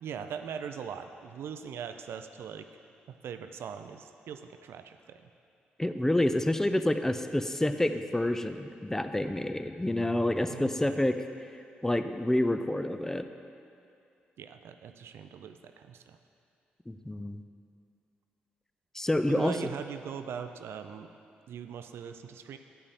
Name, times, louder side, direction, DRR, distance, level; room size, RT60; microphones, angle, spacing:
voice 1, 0.0-2.7 3.1-5.2 10.4-11.0 14.4-16.2 19.3-21.1 21.5-22.6, right 7 dB, 65° right, 8 dB, 0.4 m, -41 dB
voice 2, 5.8-11.2 11.8-13.3 16.9-17.4 18.9-19.5, left 1 dB, 10° left, 9 dB, 0.5 m, -28 dB
8.1 x 5.6 x 4.2 m, 2.5 s
hypercardioid pair, 45°, 4 cm